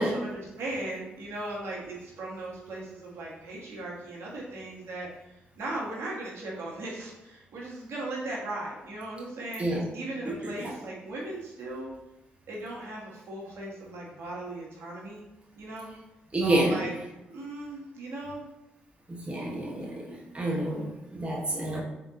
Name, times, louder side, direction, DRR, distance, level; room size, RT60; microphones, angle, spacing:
voice 1, 0.0-5.1 5.6-11.9 12.5-15.2 15.6-15.9 16.4-16.9 17.3-18.4, right 2 dB, 65° right, -4 dB, 1.3 m, -37 dB
voice 2, 10.2-10.8 16.3-17.0 19.1-21.8, right 1 dB, 25° right, -2 dB, 1.0 m, -29 dB
3.8 x 2.8 x 3.7 m, 0.96 s
hypercardioid pair, 45°, 5 cm